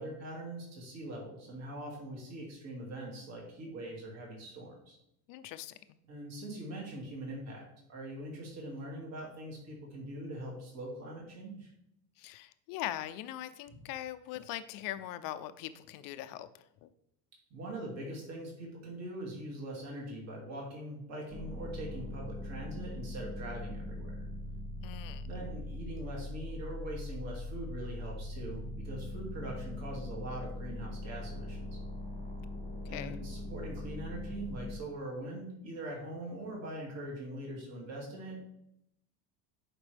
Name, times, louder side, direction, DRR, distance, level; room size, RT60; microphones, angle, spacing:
voice 1, 0.0-5.0 6.1-11.7 13.7-13.8 17.5-24.2 25.2-31.8 32.9-38.5, right 1 dB, 40° right, -2 dB, 2.4 m, -42 dB
voice 2, 5.3-5.7 12.2-16.5 16.8-16.9 24.8-25.3 32.9-33.2, left 13 dB, 55° left, 12 dB, 0.5 m, -41 dB
sound 1, 21.3-34.8, left 1 dB, 5° right, 2.1 m, -41 dB
10.5 x 5.1 x 3.4 m, 0.78 s
cardioid pair, 155°, 41 cm